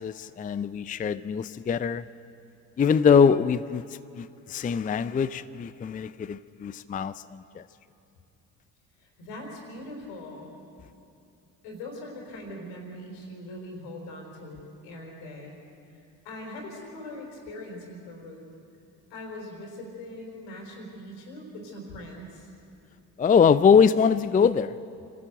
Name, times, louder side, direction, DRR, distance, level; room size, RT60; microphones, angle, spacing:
voice 1, 0.0-2.1 2.8-3.8 4.2-7.6 23.2-24.8, left 6 dB, 20° left, 0.4 m, -23 dB
voice 2, 9.0-10.5 11.6-15.6 15.9-18.5 19.1-22.5, left 1 dB, 80° left, 4.3 m, -41 dB
25.5 x 12.5 x 8.0 m
hypercardioid pair, 60°, 42 cm